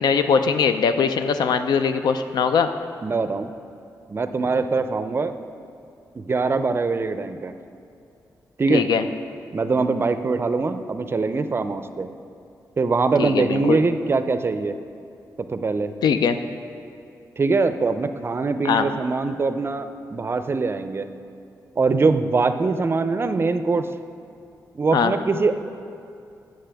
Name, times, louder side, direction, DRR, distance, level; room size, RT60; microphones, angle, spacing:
voice 1, 0.0-2.7 8.7-9.0 13.2-13.8 16.0-16.4 18.6-18.9 24.9-25.1, left 6 dB, 85° left, 9 dB, 0.4 m, -21 dB
voice 2, 3.0-3.5 4.1-5.4 6.1-7.5 8.6-8.8 9.5-12.1 12.8-14.8 15.5-15.9 17.4-21.1 21.8-23.9 24.7-25.5, right 3 dB, 35° right, 10 dB, 0.4 m, -22 dB
11.5 x 6.5 x 3.4 m, 2.5 s
cardioid pair, 85°, 7 cm